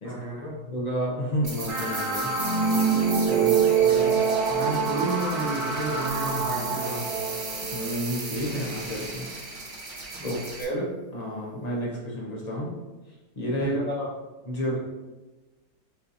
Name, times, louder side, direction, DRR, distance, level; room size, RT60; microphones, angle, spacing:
voice 1, 0.0-0.6 3.3-4.1 4.5-7.2 10.1-10.4 13.6-13.8, right 1 dB, 25° right, -6 dB, 1.3 m, -32 dB
voice 2, 0.7-2.3 3.3-3.5 7.7-9.5 10.2-12.8 13.4-14.1 14.4-14.8, equal, 55° left, -3 dB, 0.4 m, -30 dB
sound 1, 1.4-10.6, right 3 dB, 45° right, 0.7 m, -37 dB
sound 2, 1.7-8.5, right 6 dB, 85° right, 0.4 m, -25 dB
6.8 x 2.7 x 2.6 m, 1.1 s
omnidirectional pair, 1.8 m